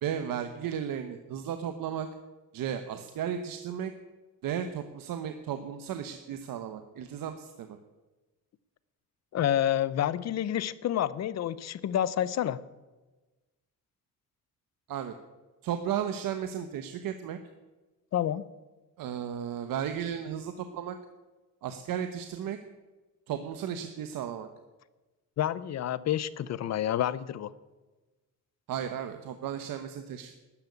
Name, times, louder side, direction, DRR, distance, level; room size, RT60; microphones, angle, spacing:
voice 1, 0.0-2.1 2.5-3.9 4.4-7.8 14.9-15.1 15.6-17.4 19.0-21.0 21.6-22.6 23.3-24.5 28.7-30.3, right 9 dB, 75° right, 8 dB, 1.1 m, -34 dB
voice 2, 9.3-12.6 18.1-18.4 25.4-27.5, left 11 dB, 50° left, 18 dB, 0.6 m, -29 dB
13.0 x 10.5 x 8.4 m, 1.2 s
cardioid pair, 180°, 34 cm